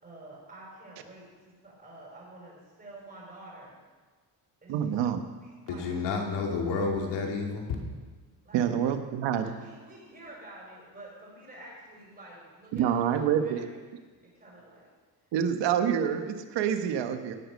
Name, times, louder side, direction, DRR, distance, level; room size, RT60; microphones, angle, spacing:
voice 1, 0.0-3.7 4.6-5.0 5.4-5.8 6.1-6.5 8.4-8.7 9.4-13.8 14.2-14.9, right 1 dB, 20° right, -5 dB, 5.7 m, -49 dB
voice 2, 4.7-5.2 8.5-9.5 12.7-13.6 15.3-17.3, right 9 dB, 80° right, 7 dB, 1.3 m, -27 dB
voice 3, 5.7-7.8, left 4 dB, 80° left, 1 dB, 2.8 m, -30 dB
17.0 x 8.4 x 6.4 m, 1.4 s
cardioid pair, 135°, 42 cm